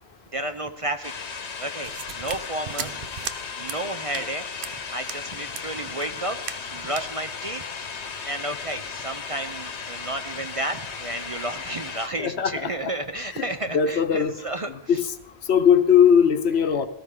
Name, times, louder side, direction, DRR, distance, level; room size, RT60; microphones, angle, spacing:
voice 1, 0.3-3.0 3.6-6.4 6.7-7.6 8.2-15.0, right 1 dB, 40° right, 8 dB, 0.6 m, -32 dB
sound 1, 1.0-12.1, left 5 dB, 90° left, 1.3 m, -36 dB
sound 2, 1.8-3.4 3.7-3.8 4.1-4.3 4.6-4.7 5.1-5.2 5.5-5.6 6.0-6.1 6.4-6.7 6.9-7.1, right 7 dB, 55° right, 0.9 m, -36 dB
voice 2, 12.2-12.5 12.8-12.9 13.4-13.5 13.7-14.3 14.9-15.0 15.5-16.9, left 7 dB, 75° left, 10 dB, 1.1 m, -19 dB
17.5 x 13.5 x 3.8 m, 0.83 s
omnidirectional pair, 1.1 m